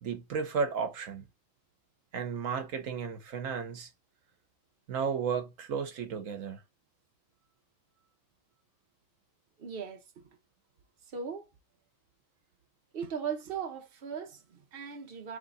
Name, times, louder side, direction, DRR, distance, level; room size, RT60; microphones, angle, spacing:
voice 1, 0.0-1.3 2.1-3.9 4.9-6.6, right 6 dB, 80° right, 1.2 m, -33 dB
voice 2, 9.6-10.4 11.1-11.5 12.9-15.4, right 7 dB, 50° right, 1.1 m, -38 dB
3.7 x 3.4 x 4.0 m
omnidirectional pair, 1.3 m